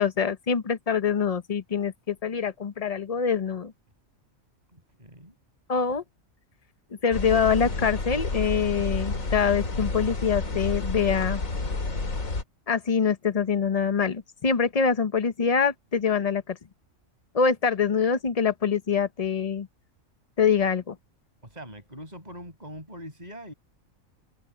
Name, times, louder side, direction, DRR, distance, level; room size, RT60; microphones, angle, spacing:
voice 1, 0.0-3.7 5.7-6.0 7.0-11.4 12.7-16.6 17.3-19.7 20.4-21.0, left 6 dB, 30° left, 0.9 m, -24 dB
voice 2, 4.7-5.3 21.4-23.5, equal, 30° right, 6.6 m, -42 dB
sound 1, 7.1-12.4, left 3 dB, 80° left, 3.2 m, -30 dB
open air
omnidirectional pair, 1.4 m